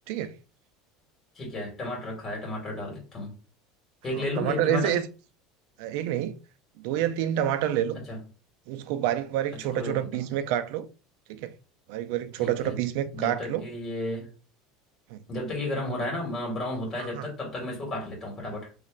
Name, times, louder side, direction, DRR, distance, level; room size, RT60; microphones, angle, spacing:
voice 1, 1.4-3.3 4.0-5.0 8.1-8.2 9.7-10.3 12.4-12.8 13.1-14.3 15.3-18.7, left 2 dB, 25° left, 2.1 m, -33 dB
voice 2, 4.1-5.1 5.8-6.4 6.8-8.0 8.7-10.9 11.3-11.5 11.9-13.6 15.1-15.2 17.0-17.3, right 11 dB, 70° right, 0.4 m, -28 dB
4.4 x 3.1 x 2.4 m
cardioid pair, 150°, 0 cm